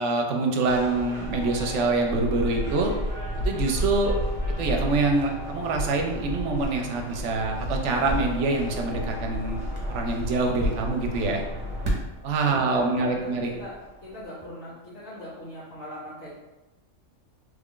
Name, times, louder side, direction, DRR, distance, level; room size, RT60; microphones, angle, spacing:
voice 1, 0.0-2.9 3.4-4.2 4.6-9.6 9.9-11.4 12.2-13.5, right 3 dB, 70° right, 2 dB, 0.9 m, -25 dB
sound 1, 0.6-14.2, equal, 30° right, 0.7 m, -32 dB
voice 2, 12.4-16.3, equal, 80° left, -13 dB, 1.6 m, -40 dB
3.3 x 2.4 x 3.6 m, 1.0 s
omnidirectional pair, 1.3 m